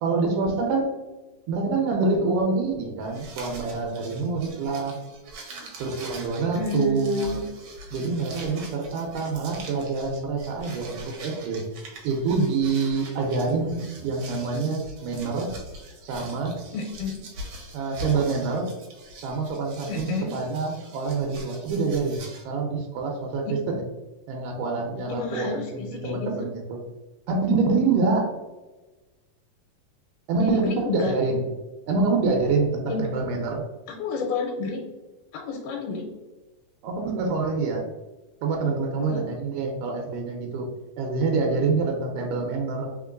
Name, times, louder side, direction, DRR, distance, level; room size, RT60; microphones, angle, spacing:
voice 1, 0.0-0.9 1.5-5.0 5.8-7.5 7.9-11.6 12.0-15.5 16.0-16.6 17.7-18.7 19.2-23.9 24.3-26.8 27.3-28.3 30.3-31.4 31.9-33.6 36.8-37.8 38.4-40.7 41.0-42.9, right 4 dB, 90° right, 1 dB, 2.2 m, -26 dB
sound 1, 3.0-22.4, right 1 dB, 70° right, 1.6 m, -43 dB
voice 2, 6.5-7.4 16.7-17.2 19.9-20.3 23.4-23.5 25.1-26.5 30.4-31.2 32.9-33.0 33.9-34.8 35.3-36.1 39.0-39.2, left 3 dB, 90° left, 0 dB, 2.2 m, -30 dB
4.4 x 3.6 x 2.4 m, 1.2 s
omnidirectional pair, 3.7 m